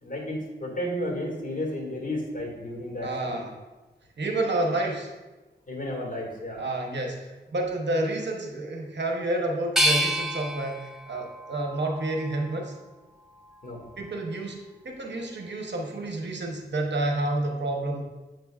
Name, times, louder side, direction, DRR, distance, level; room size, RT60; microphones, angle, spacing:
voice 1, 0.0-3.4 5.7-6.6 13.6-13.8, left 1 dB, 45° left, -1 dB, 1.9 m, -32 dB
voice 2, 3.0-3.6 4.2-5.1 6.6-12.8 14.0-18.0, right 2 dB, 70° right, 1 dB, 0.9 m, -29 dB
sound 1, 9.8-12.7 13.2-14.0, equal, ahead, 1.2 m, -29 dB
7.7 x 6.0 x 2.4 m, 1.1 s
wide cardioid pair, 65°, 19 cm